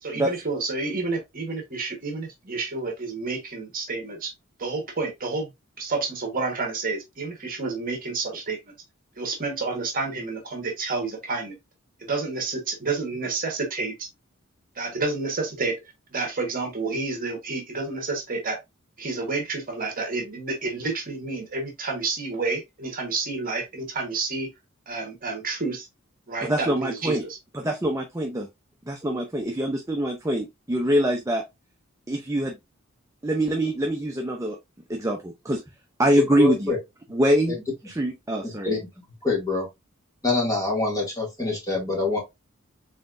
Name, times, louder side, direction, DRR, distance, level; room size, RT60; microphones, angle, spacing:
voice 1, 0.0-4.3 4.6-5.5 5.8-8.7 9.2-11.6 12.0-14.1 14.7-15.8 16.1-18.6 19.0-24.5 24.9-25.9 26.3-27.4, right 3 dB, 45° right, 1.4 m, -29 dB
voice 2, 26.4-27.2 27.5-28.5 28.9-31.4 32.1-32.6 33.2-34.6 34.9-35.6 36.0-36.7 37.1-37.6 37.9-38.7, right 1 dB, 15° right, 0.6 m, -24 dB
voice 3, 36.4-36.8 37.5-37.6 38.4-38.8 39.2-39.7 40.2-42.2, left 3 dB, 15° left, 2.3 m, -25 dB
4.2 x 3.8 x 2.5 m
head